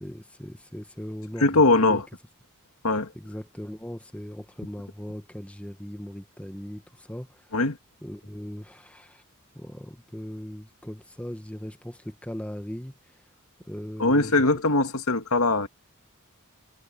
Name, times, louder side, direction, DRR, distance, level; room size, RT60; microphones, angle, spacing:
voice 1, 0.0-2.0 3.1-6.8 7.1-7.3 8.0-9.2 9.5-12.9 13.7-14.3, equal, 5° left, 1.6 m, -38 dB
voice 2, 1.4-2.1 2.8-3.1 7.5-7.8 14.0-15.7, left 2 dB, 85° left, 2.2 m, -21 dB
head